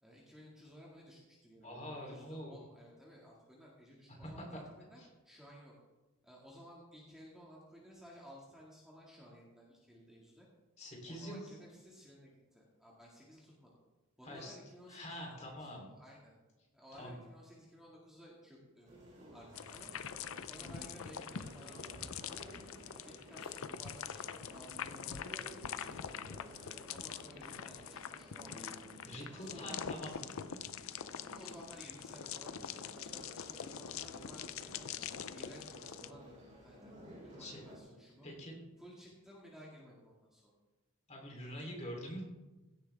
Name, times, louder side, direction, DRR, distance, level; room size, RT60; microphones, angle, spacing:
voice 1, 0.0-5.7 6.2-10.5 11.1-13.8 14.2-16.3 16.7-18.9 19.3-19.9 20.4-26.5 26.9-28.9 29.3-30.1 31.3-34.9 35.3-36.9 37.2-38.3 38.8-40.5, equal, ahead, -5 dB, 2.0 m, -56 dB
voice 2, 1.6-2.6 4.1-4.3 5.0-5.1 10.8-11.4 14.2-14.5 14.9-15.9 16.9-17.2 21.9-22.0 24.8-25.1 29.0-30.2 37.4-37.6 38.2-38.6 41.1-42.2, equal, 30° left, -1 dB, 3.2 m, -45 dB
sound 1, 18.8-37.8, equal, 30° right, 3.1 m, -54 dB
sound 2, 19.5-36.1, left 8 dB, 70° left, 0.5 m, -44 dB
16.5 x 11.5 x 3.5 m, 1.1 s
head